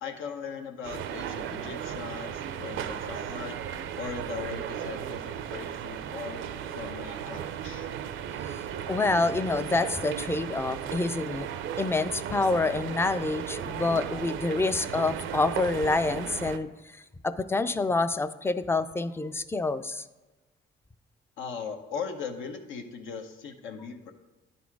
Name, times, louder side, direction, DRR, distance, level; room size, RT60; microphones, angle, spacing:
voice 1, 0.0-3.6 4.0-7.9 21.4-24.1, left 6 dB, 85° left, 5 dB, 0.9 m, -39 dB
sound 1, 0.8-16.6, right 9 dB, 80° right, 0.5 m, -36 dB
voice 2, 8.9-11.5 11.8-20.0, left 3 dB, 10° left, 13 dB, 0.3 m, -27 dB
10.5 x 4.2 x 4.7 m, 1.2 s
cardioid pair, 90°, 20 cm